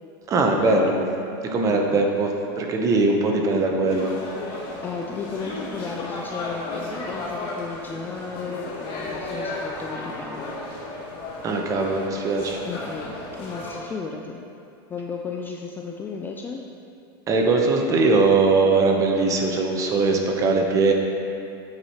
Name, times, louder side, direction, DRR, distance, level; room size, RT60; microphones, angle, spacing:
voice 1, 0.3-1.0 1.4-4.1 11.4-12.6 17.3-20.9, right 3 dB, 25° right, 2 dB, 0.8 m, -21 dB
voice 2, 1.7-2.0 4.1-4.2 4.8-10.5 12.7-14.4 14.9-16.6, left 5 dB, 15° left, 1 dB, 0.3 m, -34 dB
sound 1, 3.9-13.7, left 2 dB, 40° left, 1.5 m, -34 dB
8.4 x 4.7 x 4.3 m, 2.6 s
supercardioid pair, 145°, 13 cm